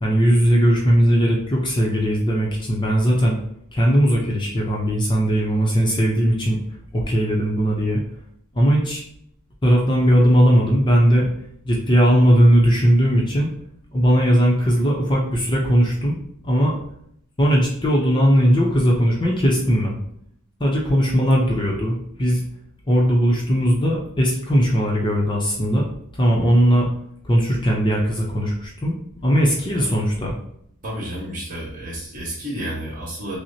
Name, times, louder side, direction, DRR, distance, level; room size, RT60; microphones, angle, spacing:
voice 1, 0.0-3.4 3.7-6.6 6.9-8.0 8.5-9.0 9.6-11.3 11.6-13.5 13.9-16.2 16.4-16.7 17.4-20.0 20.6-22.4 22.9-25.9 26.2-26.9 27.2-28.9 29.2-30.4, equal, 20° left, -2 dB, 0.6 m, -18 dB
voice 2, 30.8-33.4, right 1 dB, 35° right, -5 dB, 1.4 m, -31 dB
5.9 x 2.1 x 2.8 m, 0.68 s
head